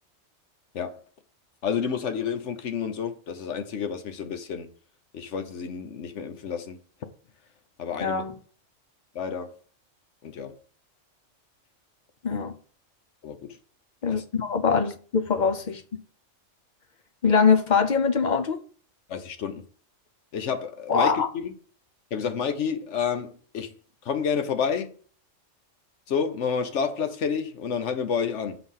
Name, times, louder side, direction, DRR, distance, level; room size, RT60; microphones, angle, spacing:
voice 1, 1.6-4.7 5.1-6.8 7.8-8.2 9.1-9.5 10.2-10.6 13.2-13.6 14.1-14.2 19.1-19.6 20.3-21.5 22.1-23.7 24.0-24.9 26.1-28.6, left 6 dB, 65° left, 1.1 m, -29 dB
voice 2, 8.0-8.3 12.2-12.5 14.0-15.8 17.2-18.6 20.9-21.3, left 5 dB, 45° left, 0.6 m, -23 dB
6.9 x 4.0 x 5.5 m
omnidirectional pair, 1.3 m